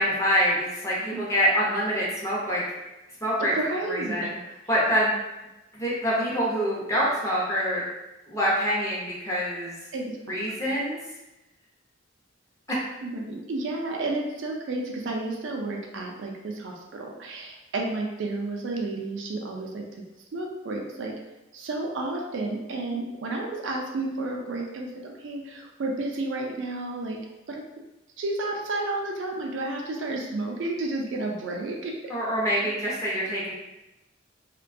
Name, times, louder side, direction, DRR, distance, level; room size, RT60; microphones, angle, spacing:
voice 1, 0.0-2.6 3.2-3.5 3.8-4.4 4.7-5.2 5.7-7.8 8.3-9.8 10.3-11.0 32.1-33.5, equal, 15° left, -6 dB, 0.6 m, -25 dB
voice 2, 3.4-4.3 9.9-10.7 13.0-19.9 20.3-21.2 21.5-27.2 27.5-27.6 28.2-32.1, right 2 dB, 70° right, 0 dB, 0.4 m, -31 dB
2.4 x 2.2 x 2.5 m, 0.99 s
head